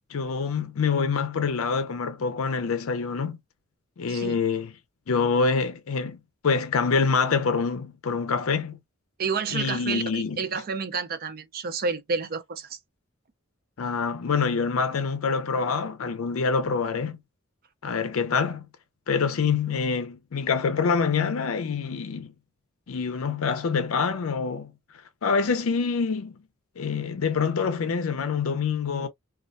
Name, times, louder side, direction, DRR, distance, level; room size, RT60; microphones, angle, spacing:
voice 1, 0.1-3.4 4.0-4.7 5.1-6.2 6.4-8.8 9.5-10.4 13.8-17.2 17.8-18.7 19.1-22.3 22.9-24.7 25.2-26.4 26.8-29.1, left 5 dB, 70° left, 0.5 m, -26 dB
voice 2, 4.1-4.4 9.2-12.8, right 5 dB, 45° right, 0.5 m, -30 dB
2.3 x 2.1 x 2.5 m
head